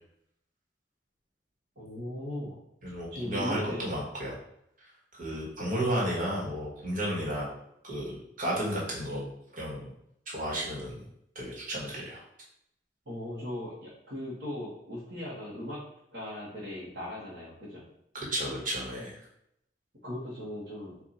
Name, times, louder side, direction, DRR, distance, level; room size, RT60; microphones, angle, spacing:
voice 1, 1.8-2.6 3.1-3.9 13.1-15.8 16.1-17.9 20.0-21.0, left 1 dB, 85° right, -8 dB, 1.4 m, -38 dB
voice 2, 2.8-4.3 5.1-7.5 7.8-9.2 9.5-9.9 10.3-11.0 11.3-12.2 18.1-19.2, right 1 dB, 50° right, -4 dB, 1.5 m, -32 dB
4.5 x 2.7 x 3.9 m, 0.76 s
head